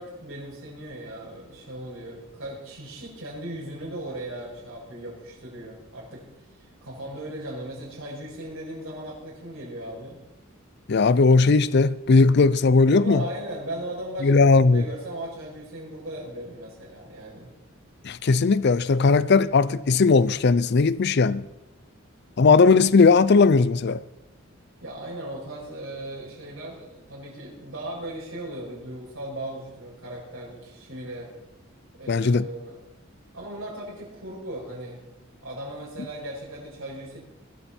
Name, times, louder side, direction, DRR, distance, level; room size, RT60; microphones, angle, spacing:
voice 1, 0.0-6.2 6.5-10.2 12.8-17.5 24.8-31.3 31.9-32.8 33.3-35.1 35.4-37.2, right 1 dB, 80° right, 6.0 m, -37 dB
voice 2, 10.9-13.2 14.2-14.8 18.0-21.5 22.4-24.0 32.1-32.5, left 4 dB, 55° left, 0.5 m, -18 dB
20.5 x 14.5 x 4.4 m
head